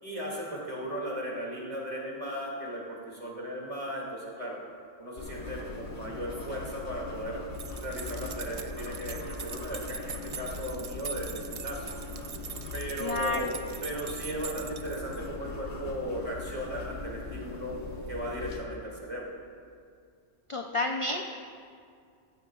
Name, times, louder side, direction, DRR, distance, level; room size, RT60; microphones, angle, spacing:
voice 1, 0.0-4.6 5.0-7.4 7.8-11.9 12.7-13.5 13.8-17.8 18.1-19.3, equal, 25° right, -4 dB, 2.5 m, -36 dB
sound 1, 5.2-18.6, left 3 dB, 55° left, 1.4 m, -40 dB
sound 2, 7.5-15.3, right 6 dB, 65° right, 0.3 m, -42 dB
voice 2, 13.0-13.5 20.5-21.2, left 2 dB, 35° left, 2 dB, 0.5 m, -30 dB
15.0 x 14.5 x 2.4 m, 2.2 s
omnidirectional pair, 1.2 m